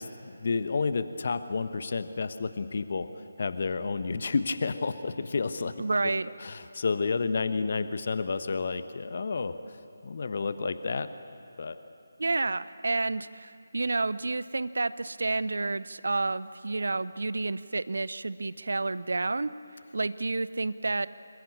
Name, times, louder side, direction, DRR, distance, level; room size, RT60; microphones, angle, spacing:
voice 1, 0.0-3.1 3.4-5.7 6.4-9.6 10.0-11.1 11.6-11.8, left 4 dB, 45° left, 11 dB, 1.2 m, -30 dB
voice 2, 5.8-6.3 12.2-19.5 19.9-21.1, right 3 dB, 65° right, 16 dB, 0.8 m, -30 dB
26.5 x 21.5 x 8.6 m, 2.8 s
figure-of-eight pair, 155°, 0 cm